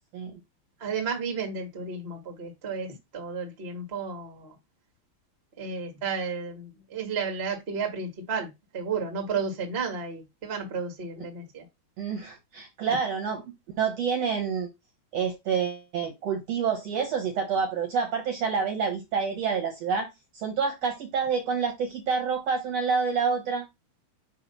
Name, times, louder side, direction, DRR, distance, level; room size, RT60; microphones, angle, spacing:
voice 1, 0.8-4.5 5.6-11.6 12.9-13.0, right 5 dB, 35° right, 0.9 m, -33 dB
voice 2, 12.0-13.4 13.8-14.7 15.1-20.1 20.3-23.6, right 6 dB, 60° right, 1.8 m, -28 dB
7.7 x 3.0 x 5.6 m
omnidirectional pair, 4.3 m